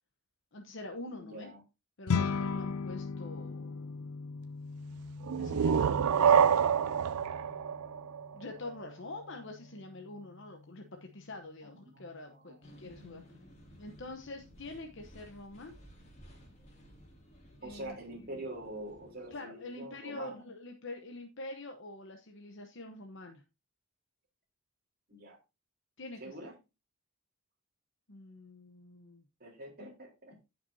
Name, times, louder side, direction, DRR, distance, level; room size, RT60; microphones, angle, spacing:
voice 1, 0.5-1.5 2.0-4.3 5.4-7.2 8.3-13.2 13.8-15.7 17.6-18.4 19.3-23.4 26.0-26.4 28.1-29.2, left 2 dB, 55° left, 4 dB, 1.0 m, -46 dB
voice 2, 1.2-1.6 11.6-12.8 17.6-20.4 25.1-25.4 26.2-26.5 29.4-30.4, right 1 dB, 40° right, -1 dB, 3.8 m, -45 dB
sound 1, 2.1-11.5, left 5 dB, 85° left, 0.5 m, -39 dB
sound 2, 5.2-8.8, right 7 dB, 85° right, 0.4 m, -27 dB
sound 3, 12.6-19.4, equal, 30° left, 2.5 m, -56 dB
15.0 x 5.9 x 2.7 m, 0.27 s
head